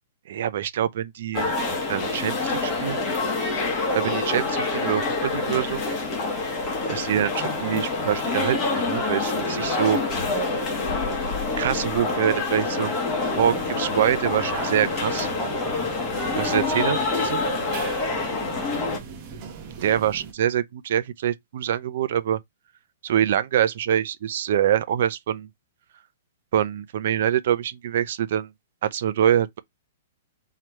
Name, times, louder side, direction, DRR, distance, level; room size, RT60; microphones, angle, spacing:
voice 1, 0.3-1.6 1.9-3.0 3.9-5.8 6.9-10.4 11.6-13.0 13.4-15.3 16.4-17.4 19.8-22.4 23.0-25.5 26.5-28.5 28.8-29.6, right 10 dB, 55° right, 0.6 m, -25 dB
sound 1, 1.3-19.0, left 3 dB, 20° left, 1.2 m, -26 dB
sound 2, 13.2-20.3, right 5 dB, 30° right, 1.1 m, -39 dB
3.8 x 3.1 x 4.4 m
hypercardioid pair, 170°, 0 cm